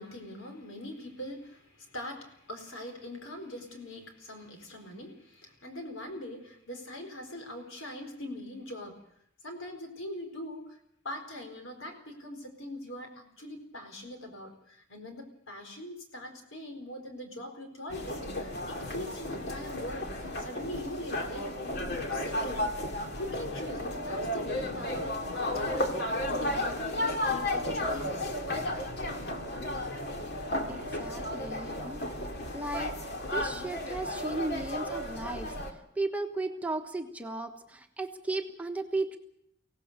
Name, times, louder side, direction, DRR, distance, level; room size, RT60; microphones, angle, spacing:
voice 1, 0.0-9.0 9.4-10.8 11.0-22.6 23.2-26.1 26.4-28.3 34.4-34.6, left 1 dB, 75° left, 5 dB, 4.4 m, -42 dB
sound 1, 17.9-35.7, left 1 dB, 55° left, 2.4 m, -33 dB
voice 2, 30.7-32.0 32.5-32.9 33.3-35.5 36.0-39.2, right 2 dB, 5° right, 3 dB, 1.2 m, -35 dB
24.0 x 17.0 x 6.7 m, 0.73 s
head